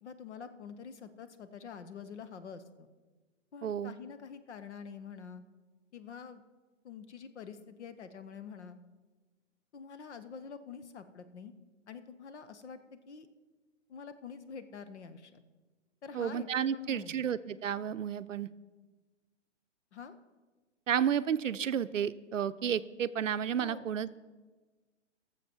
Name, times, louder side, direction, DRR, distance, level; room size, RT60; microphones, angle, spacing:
voice 1, 0.0-2.9 3.5-5.4 5.9-6.4 6.8-8.8 9.7-11.5 11.9-13.3 13.9-15.4 16.0-17.3 19.9-20.1 23.6-23.9, left 6 dB, 65° left, 11 dB, 1.1 m, -47 dB
voice 2, 3.6-3.9 16.1-18.5 20.9-24.2, right 8 dB, 90° right, 14 dB, 0.6 m, -32 dB
18.0 x 7.1 x 4.6 m, 1.3 s
hypercardioid pair, 135°, 37 cm